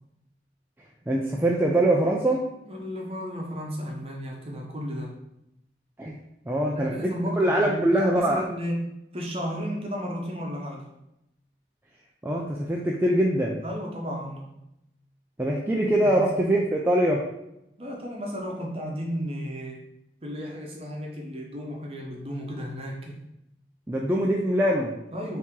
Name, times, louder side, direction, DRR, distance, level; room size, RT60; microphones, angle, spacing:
voice 1, 1.1-2.4 6.0-6.2 6.5-8.4 12.2-13.6 15.4-17.3 23.9-24.9, right 1 dB, 10° right, -2 dB, 0.3 m, -23 dB
voice 2, 2.6-5.2 6.8-8.8 9.1-10.9 13.6-14.5 16.0-16.3 17.8-19.8 20.2-23.2 25.1-25.4, equal, 35° right, 0 dB, 0.8 m, -33 dB
4.5 x 2.8 x 3.6 m, 0.85 s
head